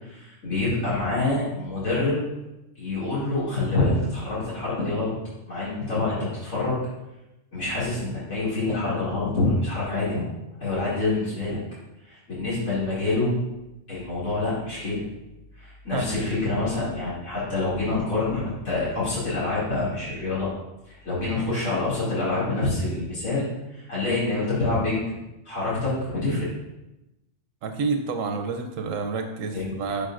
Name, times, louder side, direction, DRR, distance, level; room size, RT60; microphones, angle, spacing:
voice 1, 0.0-2.2 2.8-5.1 5.5-6.8 7.5-10.3 10.6-11.6 12.0-13.3 13.9-15.0 15.6-20.5 20.9-23.4 23.7-25.0 25.4-26.5 29.5-29.8, left 2 dB, 75° left, -10 dB, 2.8 m, -26 dB
voice 2, 27.6-30.1, right 4 dB, 85° right, 5 dB, 1.1 m, -29 dB
12.0 x 5.1 x 2.5 m, 0.98 s
omnidirectional pair, 1.3 m